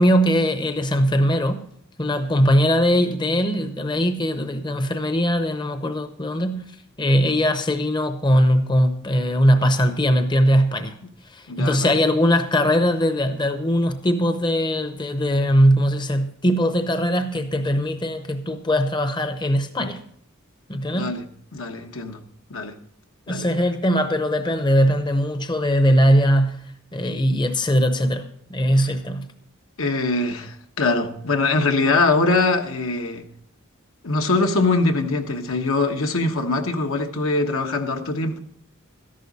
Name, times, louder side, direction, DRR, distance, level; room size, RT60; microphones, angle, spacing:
voice 1, 0.0-1.6 2.0-6.6 7.0-10.9 11.3-20.0 20.7-21.1 23.3-26.6 26.9-28.2 28.5-29.3, equal, 20° left, 0.7 m, -20 dB
voice 2, 11.5-12.0 20.9-21.2 21.5-22.2 22.5-22.7 23.3-23.5 29.8-33.2 34.0-38.4, left 3 dB, 80° left, 1.3 m, -22 dB
13.5 x 11.0 x 4.1 m
head